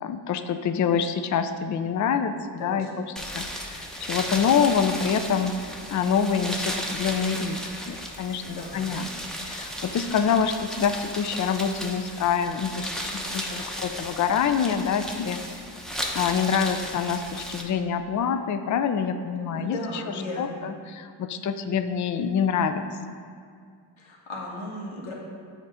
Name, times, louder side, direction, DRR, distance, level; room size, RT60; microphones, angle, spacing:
voice 1, 0.0-3.1 3.3-9.1 9.4-15.4 16.1-19.8 20.4-22.9, left 7 dB, 40° left, 9 dB, 0.4 m, -26 dB
voice 2, 2.6-3.1 8.4-8.9 19.5-20.6 24.0-25.1, left 1 dB, 75° left, -3 dB, 1.2 m, -36 dB
sound 1, 3.2-17.6, equal, ahead, 0.7 m, -35 dB
7.1 x 2.6 x 5.5 m, 2.2 s
cardioid pair, 50°, 48 cm